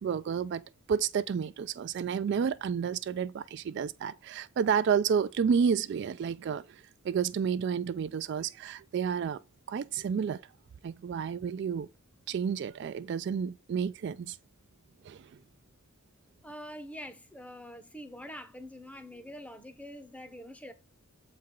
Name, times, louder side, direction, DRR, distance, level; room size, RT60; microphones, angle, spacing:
voice 1, 0.0-0.6 0.9-9.4 9.7-10.4 10.8-11.9 12.3-14.4 15.0-15.3, right 7 dB, 55° right, 0.3 m, -30 dB
voice 2, 16.4-20.7, equal, 5° left, 0.7 m, -45 dB
7.5 x 4.3 x 3.7 m
head